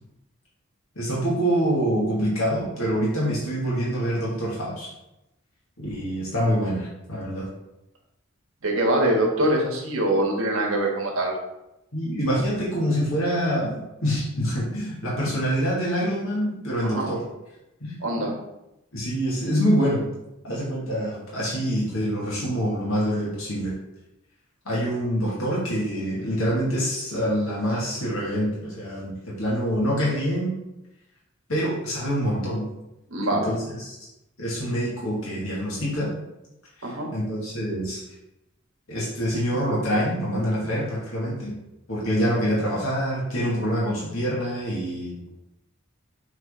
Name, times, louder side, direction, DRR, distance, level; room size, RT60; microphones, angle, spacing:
voice 1, 1.0-4.9 5.8-7.4 11.9-17.2 17.8-18.3 18.9-20.1 20.4-23.7 24.7-30.5 31.5-32.7 33.3-34.0 34.4-36.1 36.8-38.0 38.9-41.5 41.9-45.1, equal, 80° left, -6 dB, 2.1 m, -26 dB
voice 2, 8.6-11.3 16.8-17.1 18.0-18.3 33.1-33.5 36.8-37.1, right 1 dB, 80° right, -1 dB, 1.4 m, -23 dB
7.2 x 3.8 x 3.8 m, 0.91 s
head